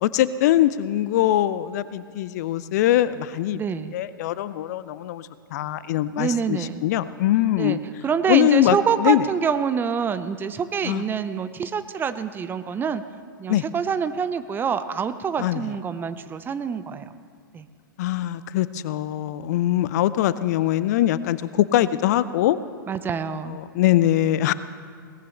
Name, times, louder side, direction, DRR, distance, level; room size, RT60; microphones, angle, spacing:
voice 1, 0.0-3.6 3.9-7.8 8.3-9.3 10.8-11.0 13.5-13.6 15.4-15.7 18.0-22.6 23.3-24.5, left 13 dB, 50° left, 16 dB, 0.5 m, -22 dB
voice 2, 3.5-4.0 6.2-6.8 7.6-13.0 13.4-17.0 17.5-17.7 22.9-23.6, right 6 dB, 20° right, 11 dB, 0.6 m, -26 dB
21.5 x 18.5 x 3.3 m, 2.2 s
figure-of-eight pair, 100°, 11 cm